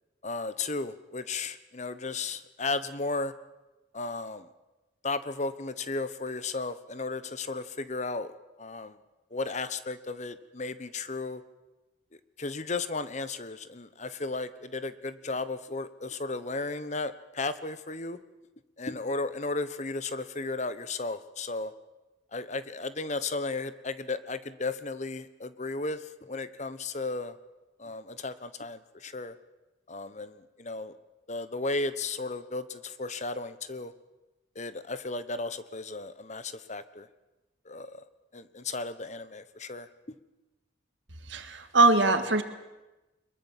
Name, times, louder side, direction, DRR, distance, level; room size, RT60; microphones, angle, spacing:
voice 1, 0.2-3.3 3.9-4.5 5.0-8.3 8.6-9.0 9.3-11.4 12.4-18.2 18.8-21.7 22.3-27.3 27.8-29.3 29.9-30.9 31.3-33.9 34.5-37.1 37.7-38.0 38.3-39.9, left 3 dB, 40° left, 13 dB, 1.1 m, -34 dB
voice 2, 41.3-42.4, right 3 dB, 80° right, 8 dB, 2.1 m, -22 dB
22.5 x 22.0 x 7.5 m, 1.1 s
head